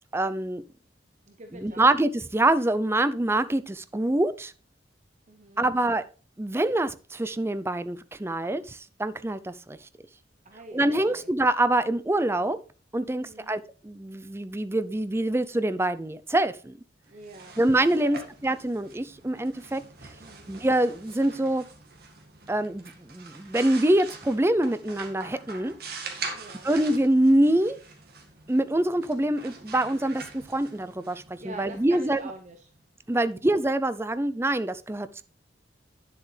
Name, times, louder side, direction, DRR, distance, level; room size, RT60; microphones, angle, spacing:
voice 1, 0.1-0.6 1.5-4.5 5.6-6.0 6.4-9.8 10.7-12.6 12.9-16.8 17.6-19.8 20.5-21.6 22.5-25.7 26.6-27.8 28.5-32.2 33.1-35.2, right 1 dB, 15° right, 13 dB, 0.5 m, -25 dB
voice 2, 1.3-1.9 5.3-5.7 10.4-11.3 13.1-13.5 17.1-17.5 17.9-18.2 20.2-20.5 26.3-26.7 31.4-32.7 33.1-33.4, right 2 dB, 40° right, 5 dB, 0.9 m, -45 dB
sound 1, 17.1-32.8, right 4 dB, 60° right, 1.9 m, -44 dB
10.5 x 7.4 x 3.3 m, 0.37 s
head